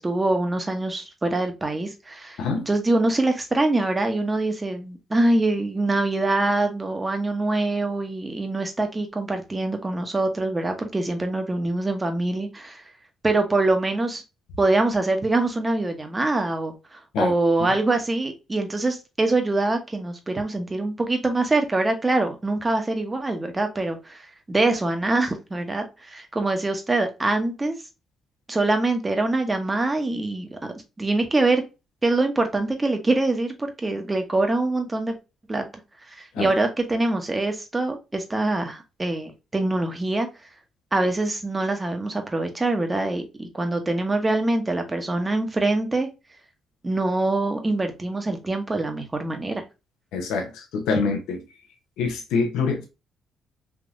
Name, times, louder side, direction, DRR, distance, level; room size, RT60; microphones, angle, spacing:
voice 1, 0.0-2.4 2.7-12.8 13.2-14.2 14.6-27.7 28.5-31.6 32.0-35.1 35.5-35.6 36.1-40.3 40.9-46.1 46.8-49.6, right 2 dB, 20° right, 0.8 m, -24 dB
voice 2, 50.1-51.4 52.0-52.9, left 4 dB, 90° left, 0.8 m, -25 dB
3.5 x 2.8 x 2.4 m
cardioid pair, 90°, 0 cm